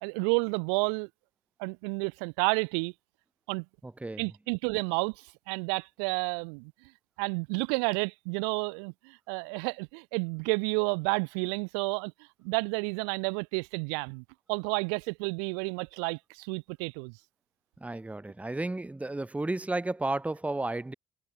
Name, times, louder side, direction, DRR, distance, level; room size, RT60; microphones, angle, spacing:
voice 1, 0.0-1.1 1.6-2.9 3.5-3.7 4.2-5.1 5.5-6.7 7.2-12.1 12.4-17.1, right 40 dB or more, 80° right, 1.9 m, -30 dB
voice 2, 3.8-4.3 17.8-20.9, right 2 dB, 10° right, 1.3 m, -33 dB
hypercardioid pair, 70°, 14 cm